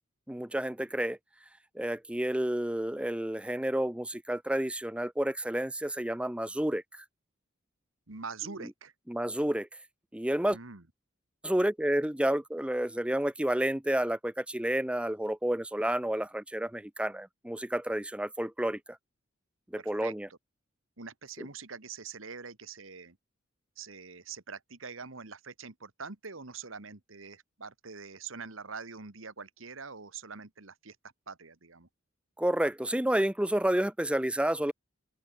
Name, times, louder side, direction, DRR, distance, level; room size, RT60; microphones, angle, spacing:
voice 1, 0.3-1.2 1.7-6.8 9.1-9.7 10.1-10.6 11.4-18.8 19.7-20.3 32.4-34.7, right 1 dB, 5° right, 0.6 m, -30 dB
voice 2, 8.1-8.9 10.5-10.8 19.8-20.4 21.0-23.2 23.8-31.9, right 5 dB, 75° right, 2.0 m, -44 dB
open air
head